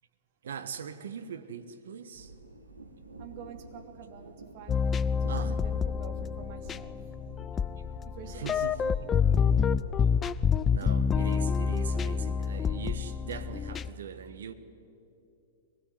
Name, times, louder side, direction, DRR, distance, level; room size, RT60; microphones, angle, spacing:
voice 1, 0.4-2.3 5.3-5.6 7.7-7.8 8.2-9.1 10.0-10.1 10.7-14.5, right 7 dB, 65° right, 1.4 m, -41 dB
sound 1, 2.1-13.6, right 2 dB, 80° right, 2.2 m, -50 dB
voice 2, 3.2-4.9 5.2-7.0 8.0-8.9 10.0-10.1, right 8 dB, 45° right, 2.6 m, -47 dB
sound 2, 4.7-13.9, left 6 dB, 20° left, 0.5 m, -28 dB
23.5 x 19.5 x 9.7 m
figure-of-eight pair, 105°, 0 cm